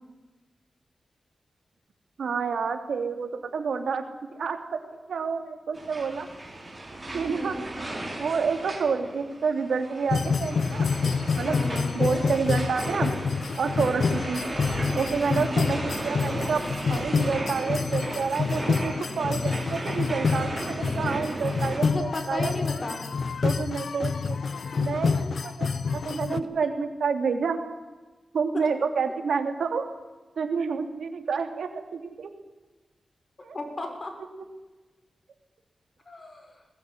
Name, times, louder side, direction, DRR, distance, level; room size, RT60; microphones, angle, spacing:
voice 1, 2.2-4.0 4.3-4.8 5.1-6.3 7.1-7.6 7.9-10.9 11.4-11.6 11.9-13.1 13.6-14.4 15.0-16.6 16.9-22.7 23.4-24.4 24.8-25.7 26.0-27.6 28.3-29.9 30.4-32.3 33.4-33.6 34.4-34.5, right 5 dB, 90° right, 6 dB, 2.9 m, -29 dB
sound 1, 5.7-21.8, right 2 dB, 25° right, 6.7 m, -35 dB
voice 2, 7.1-7.6 11.4-12.2 14.8-15.5 21.8-23.0 26.3-26.4 33.5-34.1 36.1-36.5, left 2 dB, 40° left, 4 dB, 5.9 m, -34 dB
sound 2, 10.1-26.4, left 5 dB, 70° left, 0.9 m, -28 dB
20.5 x 20.0 x 10.0 m, 1.2 s
wide cardioid pair, 80°, 0 cm